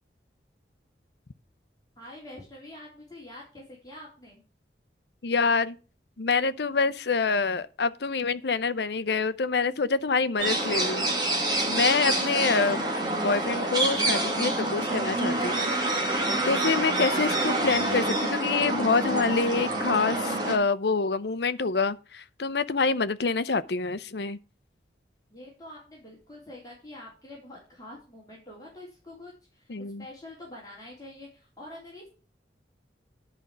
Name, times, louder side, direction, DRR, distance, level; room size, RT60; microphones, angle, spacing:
voice 1, 2.0-4.4 25.3-32.1, left 1 dB, 20° left, 3.6 m, -46 dB
voice 2, 5.2-5.8 6.2-11.1 11.7-12.9 13.2-15.6 16.5-24.4 29.7-30.0, left 4 dB, 65° left, 0.7 m, -26 dB
sound 1, 10.4-20.6, right 2 dB, 25° right, 2.3 m, -27 dB
11.0 x 5.3 x 7.3 m
head